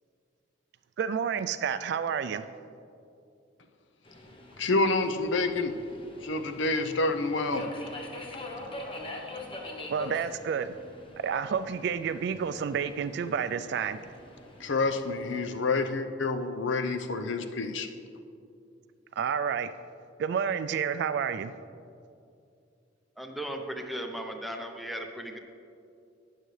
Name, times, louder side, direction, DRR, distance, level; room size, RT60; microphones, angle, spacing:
voice 1, 1.0-2.5 9.9-10.7 11.2-14.0 19.2-19.7 20.2-21.5, right 7 dB, 60° right, 11 dB, 0.3 m, -30 dB
Subway metro underground, 4.0-15.6, left 2 dB, 30° left, 0.9 m, -44 dB
voice 2, 4.6-5.7 6.2-7.6 14.6-17.9, left 3 dB, 75° left, 7 dB, 0.7 m, -28 dB
voice 3, 23.2-25.4, equal, ahead, 4 dB, 0.6 m, -36 dB
18.5 x 6.5 x 3.2 m, 2.5 s
head